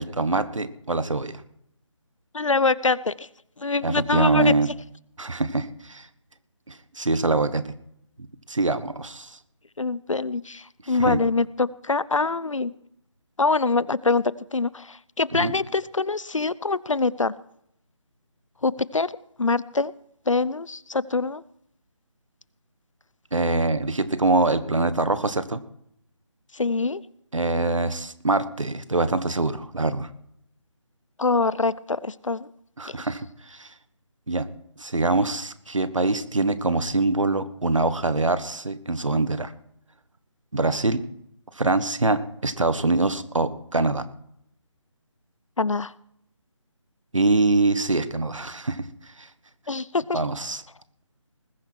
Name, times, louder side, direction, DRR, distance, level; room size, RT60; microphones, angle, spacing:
voice 1, 0.0-1.4 3.8-4.7 5.2-6.1 6.7-7.7 8.5-9.4 10.8-11.2 15.3-15.5 23.3-25.6 27.3-30.1 32.8-33.7 34.3-34.5 34.8-39.5 40.5-41.0 41.5-44.0 47.1-49.3 50.1-50.6, right 2 dB, 80° right, 13 dB, 1.5 m, -24 dB
voice 2, 2.3-3.3 3.6-4.5 9.8-12.7 13.4-17.4 18.6-19.1 19.4-19.9 20.3-21.4 26.5-27.0 31.2-32.5 32.9-33.0 45.6-45.9 49.7-50.2, left 3 dB, 85° left, 21 dB, 0.7 m, -24 dB
20.0 x 10.0 x 4.7 m, 0.72 s
figure-of-eight pair, 155°, 16 cm